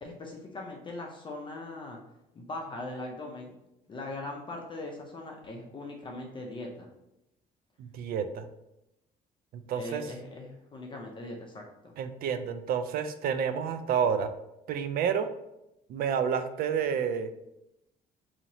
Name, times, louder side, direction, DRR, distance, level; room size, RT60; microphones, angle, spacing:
voice 1, 0.0-2.0 2.3-3.5 3.9-6.9 9.7-11.9, left 2 dB, 30° left, 0 dB, 0.6 m, -40 dB
voice 2, 7.8-8.5 9.7-10.0 12.0-14.3 14.7-15.3 15.9-17.3, right 7 dB, 60° right, 10 dB, 0.4 m, -29 dB
2.8 x 2.8 x 4.0 m, 0.88 s
cardioid pair, 110°, 17 cm